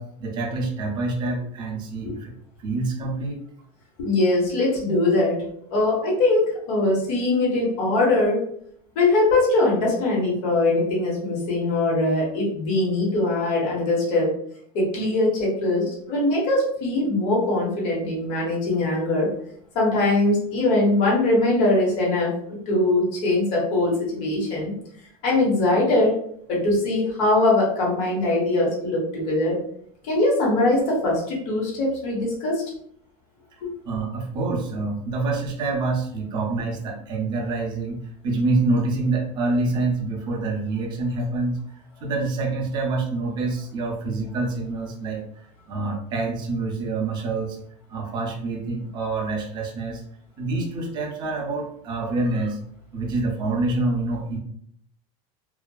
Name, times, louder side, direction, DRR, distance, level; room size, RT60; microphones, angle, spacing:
voice 1, 0.0-3.4 33.8-41.6 42.0-47.6 47.9-50.0 50.4-52.6 52.9-54.4, right 3 dB, 25° right, 0 dB, 0.5 m, -26 dB
voice 2, 4.0-5.4 5.7-8.4 8.9-14.3 14.7-19.3 19.7-24.7 25.2-26.2 26.5-29.6 30.0-32.6 33.6-33.7, left 2 dB, 50° left, -4 dB, 1.1 m, -21 dB
2.7 x 2.3 x 2.3 m, 0.67 s
supercardioid pair, 160°, 19 cm